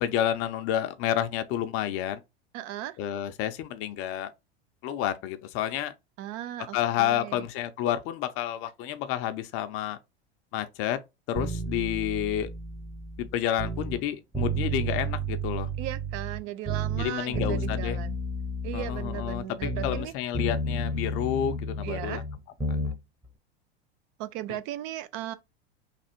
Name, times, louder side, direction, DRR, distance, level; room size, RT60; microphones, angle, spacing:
voice 1, 0.0-2.2 3.0-4.3 4.8-5.9 6.7-10.0 10.5-11.0 11.3-12.5 13.2-15.7 16.9-18.0 18.7-22.2 22.7-22.8, left 11 dB, 45° left, 0.6 m, -30 dB
voice 2, 2.5-3.0 6.2-7.5 15.8-18.2 18.6-20.1 21.8-22.2 24.2-25.3, right 13 dB, 50° right, 0.6 m, -37 dB
sound 1, 11.4-14.0 14.3-16.4 16.7-20.1 20.3-23.0 23.3-23.4, right 1 dB, 10° right, 0.9 m, -32 dB
3.3 x 2.4 x 4.4 m
hypercardioid pair, 95°, 31 cm